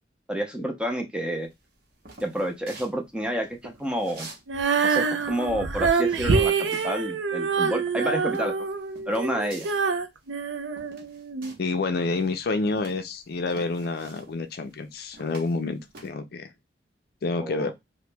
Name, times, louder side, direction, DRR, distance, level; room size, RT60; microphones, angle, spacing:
voice 1, 0.3-1.5 2.2-4.3 4.8-8.5 9.1-9.7 17.4-17.7, equal, 5° right, 0.5 m, -29 dB
sound 1, 1.4-4.4 4.7-11.8 12.1-16.1, right 3 dB, 55° right, 0.9 m, -47 dB
Female singing, 4.5-11.5, right 5 dB, 90° right, 0.5 m, -26 dB
voice 2, 11.6-16.5 17.2-17.7, left 3 dB, 60° left, 0.4 m, -28 dB
2.9 x 2.1 x 3.2 m
head